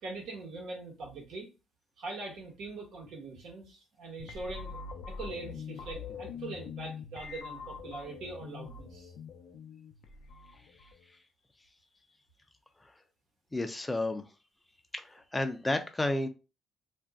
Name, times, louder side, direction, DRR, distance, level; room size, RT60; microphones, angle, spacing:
voice 1, 0.0-1.5 2.0-4.8 5.1-9.1, right 3 dB, 80° right, 1.1 m, -42 dB
sound 1, 4.2-11.1, left 5 dB, 80° left, 0.4 m, -44 dB
voice 2, 13.5-14.2 14.9-16.3, left 2 dB, 15° left, 0.4 m, -31 dB
2.5 x 2.1 x 3.5 m
cardioid pair, 90°, 0 cm